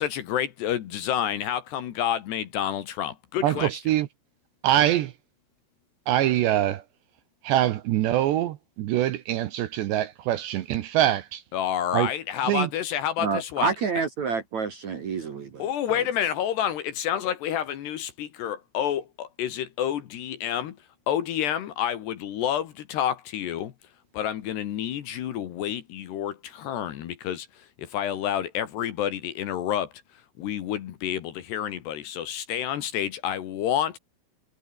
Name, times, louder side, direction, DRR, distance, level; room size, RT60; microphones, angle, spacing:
voice 1, 0.0-3.7 11.5-13.7 15.6-20.8 21.1-23.7 24.1-29.9 30.4-34.0, left 10 dB, 65° left, 3.4 m, -29 dB
voice 2, 3.4-4.1 4.6-5.1 6.1-6.8 7.4-11.4 11.9-12.1 12.4-12.7, right 12 dB, 70° right, 2.9 m, -24 dB
voice 3, 13.2-16.0, right 5 dB, 50° right, 2.3 m, -29 dB
omnidirectional pair, 5.8 m